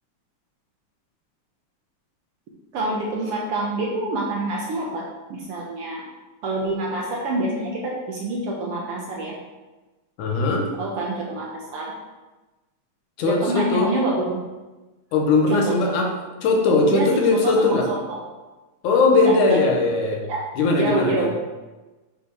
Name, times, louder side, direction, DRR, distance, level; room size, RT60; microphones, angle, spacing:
voice 1, 2.7-5.0 5.3-6.0 6.4-9.3 10.8-11.4 11.7-11.9 13.2-14.4 15.6-15.9 16.9-18.2 19.0-19.7 20.3-20.4 20.8-21.3, right 2 dB, 65° right, -3 dB, 1.6 m, -26 dB
voice 2, 10.2-10.7 13.2-13.9 15.1-16.1 16.4-17.9 18.8-20.2 20.6-21.3, left 3 dB, 80° left, 1 dB, 2.5 m, -19 dB
7.5 x 5.0 x 4.8 m, 1.2 s
omnidirectional pair, 3.5 m